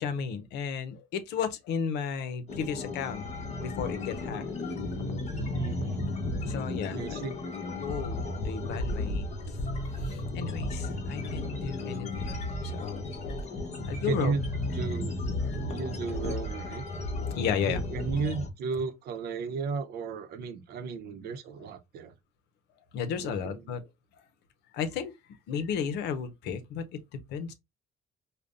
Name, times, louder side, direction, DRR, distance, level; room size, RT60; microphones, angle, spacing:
voice 1, 0.0-4.5 6.4-7.2 7.8-9.3 9.9-13.4 13.8-14.3 14.7-15.0 15.4-16.0 17.3-17.8 22.9-23.8 24.7-25.1 25.5-27.0 27.3-27.5, left 7 dB, 80° left, 0.7 m, -34 dB
sound 1, 2.5-18.5, left 2 dB, 40° left, 1.2 m, -34 dB
voice 2, 5.5-6.1 6.9-7.4 14.0-14.4 14.7-15.2 15.7-16.8 17.6-22.1 23.1-23.7, right 5 dB, 70° right, 0.7 m, -34 dB
5.1 x 2.2 x 2.5 m
cardioid pair, 110°, 17 cm